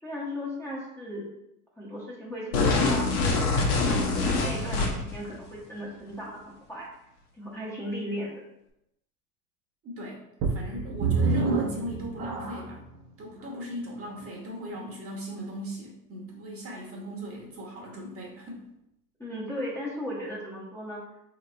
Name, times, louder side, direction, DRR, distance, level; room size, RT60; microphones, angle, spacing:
voice 1, 0.0-1.3 1.8-3.3 3.6-6.9 7.4-8.3 19.2-21.0, equal, 5° left, -6 dB, 1.0 m, -36 dB
sound 1, 2.5-5.2, left 3 dB, 70° left, 1.1 m, -24 dB
voice 2, 9.8-10.2 10.5-12.8 13.2-18.6, equal, 30° right, -2 dB, 1.3 m, -38 dB
sound 2, 10.4-12.8 13.5-13.6 14.2-14.3, right 4 dB, 45° right, 1.0 m, -27 dB
3.8 x 3.1 x 3.2 m, 0.83 s
hypercardioid pair, 85°, 46 cm